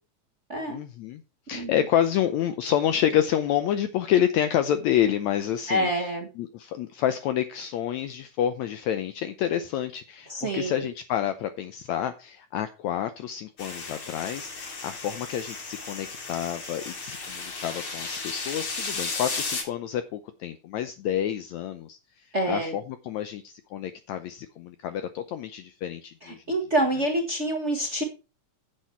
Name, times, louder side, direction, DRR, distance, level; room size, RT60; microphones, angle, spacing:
voice 1, 0.7-1.2 1.5-6.1 6.4-22.0 22.5-26.4, left 10 dB, 75° left, 1.8 m, -28 dB
voice 2, 5.7-6.3 10.3-10.8 22.3-22.8 26.2-28.0, right 1 dB, 45° right, 0.9 m, -27 dB
sound 1, 13.6-19.6, left 3 dB, 50° left, 3.9 m, -34 dB
10.0 x 7.7 x 4.4 m
omnidirectional pair, 3.7 m